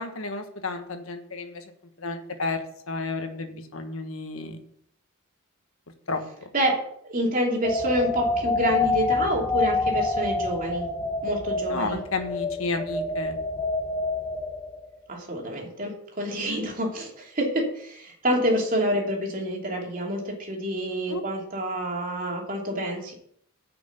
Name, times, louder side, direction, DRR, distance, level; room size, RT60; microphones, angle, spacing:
voice 1, 0.0-1.6 2.0-2.6 2.9-4.6 6.1-6.2 11.7-13.4 21.1-21.2, left 3 dB, 65° left, 6 dB, 1.5 m, -31 dB
voice 2, 6.5-10.9 11.2-12.0 15.1-23.1, right 1 dB, 40° right, 0 dB, 2.9 m, -27 dB
sound 1, 7.6-14.9, left 3 dB, 15° left, 1.1 m, -27 dB
9.4 x 6.2 x 8.2 m, 0.65 s
head